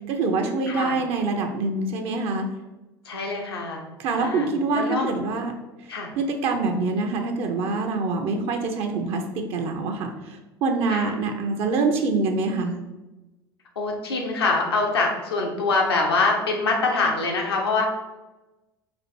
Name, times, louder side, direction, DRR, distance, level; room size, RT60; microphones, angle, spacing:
voice 1, 0.1-2.5 4.0-5.5 6.2-12.8, right 3 dB, 50° right, 4 dB, 0.6 m, -25 dB
voice 2, 0.7-1.0 3.0-3.8 4.2-4.5 4.7-5.1 5.9-6.1 10.9-11.1 13.8-17.9, left 3 dB, 80° left, 0 dB, 0.9 m, -24 dB
4.3 x 2.5 x 4.3 m, 1.1 s
figure-of-eight pair, 70°, 13 cm